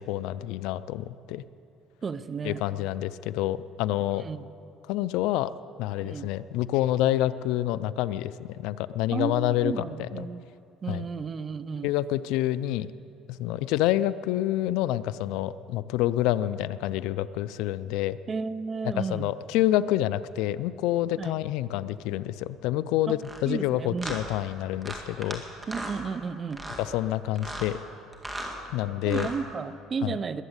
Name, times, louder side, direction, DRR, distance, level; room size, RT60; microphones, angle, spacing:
voice 1, 0.0-1.4 2.4-4.3 4.9-5.5 5.8-10.3 10.9-11.1 11.8-12.9 13.3-18.2 18.8-25.4 26.8-27.8 28.7-29.3 30.0-30.2, left 14 dB, 80° left, 16 dB, 0.4 m, -28 dB
voice 2, 2.0-2.6 4.2-4.5 6.0-6.3 9.1-10.4 10.8-11.9 18.3-19.3 21.2-21.4 23.1-23.2 23.4-24.2 25.7-26.6 29.0-30.4, right 5 dB, 30° right, 14 dB, 0.6 m, -33 dB
sound 1, 23.2-23.4 24.0-24.2 24.8-25.4 25.6-26.0 26.5-26.8 27.4-27.7 28.1-28.6 29.0-29.4, right 1 dB, 10° right, 1.9 m, -36 dB
20.5 x 8.1 x 8.1 m, 2.7 s
cardioid pair, 135°, 0 cm